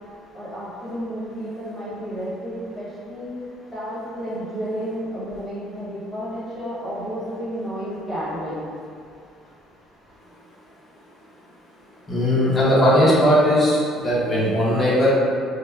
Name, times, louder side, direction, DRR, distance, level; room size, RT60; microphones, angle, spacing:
voice 1, 0.1-3.3 3.7-8.7, equal, ahead, -11 dB, 1.1 m, -31 dB
voice 2, 12.1-15.2, equal, 20° left, -7 dB, 0.7 m, -18 dB
3.0 x 2.1 x 2.3 m, 2.3 s
cardioid pair, 120°, 0 cm